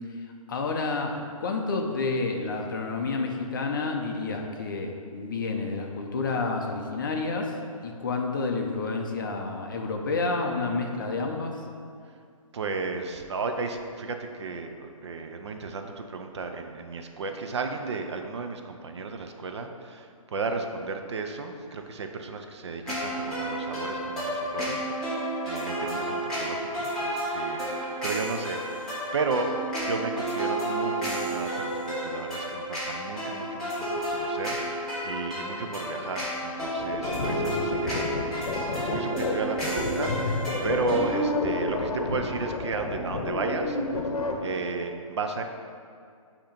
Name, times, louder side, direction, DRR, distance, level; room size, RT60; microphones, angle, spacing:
voice 1, 0.5-11.6, left 3 dB, 35° left, 2 dB, 0.6 m, -29 dB
voice 2, 12.5-25.2 25.4-29.5 29.8-44.1 44.4-45.4, right 4 dB, 50° right, 5 dB, 0.5 m, -34 dB
sound 1, 22.9-41.2, right 1 dB, 5° left, 0.9 m, -31 dB
sound 2, 36.8-44.4, left 2 dB, 75° left, 0.8 m, -30 dB
8.1 x 2.9 x 5.1 m, 2.2 s
hypercardioid pair, 170°, 18 cm